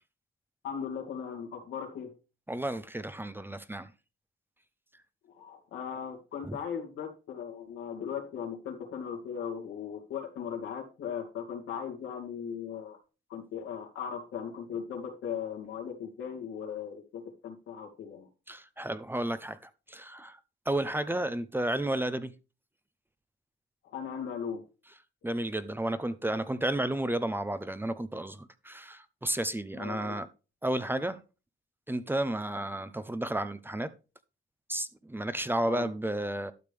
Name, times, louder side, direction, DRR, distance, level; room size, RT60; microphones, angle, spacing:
voice 1, 0.6-2.1 5.3-13.0 13.3-18.3 23.8-24.6 29.8-30.2 32.8-32.9 35.6-35.9, left 7 dB, 85° left, 2.4 m, -38 dB
voice 2, 2.5-3.9 6.4-6.6 18.5-20.4 20.7-22.3 25.2-30.3 30.6-31.2 31.9-33.9 34.7-36.5, right 1 dB, 10° right, 0.7 m, -32 dB
12.0 x 6.5 x 3.5 m
cardioid pair, 90°, 20 cm